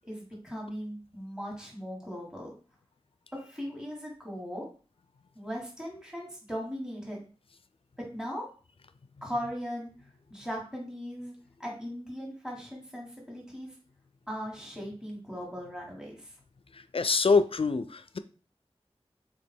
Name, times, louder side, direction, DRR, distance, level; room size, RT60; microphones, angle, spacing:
voice 1, 0.1-2.5 3.5-4.6 5.3-7.3 8.0-8.5 9.2-9.9 10.3-13.7 14.3-16.3, equal, 5° right, -2 dB, 1.7 m, -38 dB
voice 2, 16.9-18.2, left 4 dB, 60° left, 12 dB, 0.4 m, -25 dB
3.8 x 3.0 x 4.4 m, 0.38 s
wide cardioid pair, 40°, 11 cm